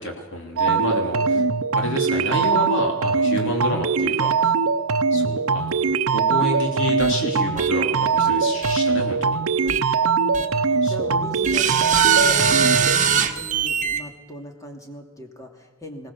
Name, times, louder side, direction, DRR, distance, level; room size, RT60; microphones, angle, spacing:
voice 1, 0.0-1.4 1.7-4.5 5.1-9.4 10.8-11.3, left 1 dB, 60° left, 2 dB, 3.1 m, -29 dB
sound 1, 0.6-13.0, right 5 dB, 80° right, 0.7 m, -21 dB
sound 2, 7.0-7.1 7.6-7.7 8.6-8.7 9.7-9.8 10.3-10.5 11.4-14.0, right 7 dB, 35° right, 1.5 m, -21 dB
voice 2, 9.5-9.9 10.2-12.4 12.8-16.1, equal, 15° left, 3 dB, 2.6 m, -38 dB
21.0 x 18.0 x 7.2 m, 1.3 s
head